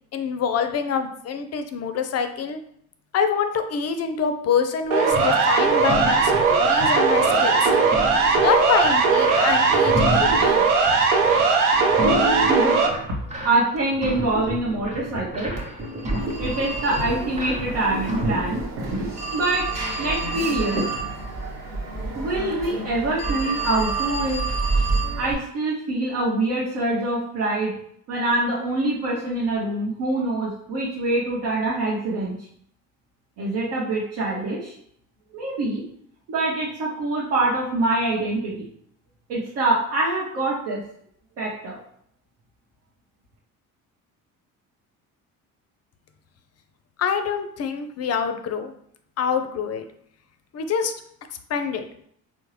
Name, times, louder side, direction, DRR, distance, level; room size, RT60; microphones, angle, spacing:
voice 1, 0.1-2.6 3.1-7.7 8.4-10.6 47.0-48.7 49.2-49.9 50.5-50.9 51.5-51.8, left 6 dB, 40° left, 8 dB, 0.5 m, -25 dB
Siren, 4.9-12.9, right 4 dB, 90° right, 0.5 m, -19 dB
sound 1, 5.1-18.9, equal, 15° right, 0.9 m, -31 dB
voice 2, 13.4-15.5 16.4-19.6 20.0-21.0 22.1-24.4 25.2-27.7 28.1-32.3 33.4-34.7 35.3-35.8 36.3-38.7 39.3-40.8 41.4-41.8, right 2 dB, 70° right, -5 dB, 0.9 m, -25 dB
Telephone, 15.6-25.3, right 3 dB, 40° right, 1.0 m, -29 dB
3.6 x 2.1 x 3.1 m, 0.67 s
hypercardioid pair, 55°, 42 cm